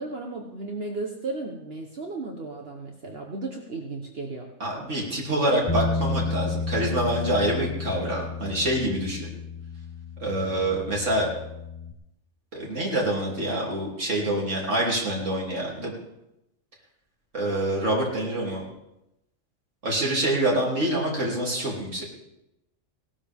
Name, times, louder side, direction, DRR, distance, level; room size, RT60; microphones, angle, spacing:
voice 1, 0.0-4.5, right 3 dB, 55° right, 1 dB, 1.4 m, -34 dB
voice 2, 4.6-9.3 10.2-11.3 12.5-15.9 17.3-18.6 19.8-22.0, right 1 dB, 75° right, -3 dB, 3.3 m, -26 dB
Bass guitar, 5.7-11.9, left 4 dB, 20° left, 1.0 m, -32 dB
18.0 x 12.5 x 3.6 m, 0.89 s
omnidirectional pair, 1.3 m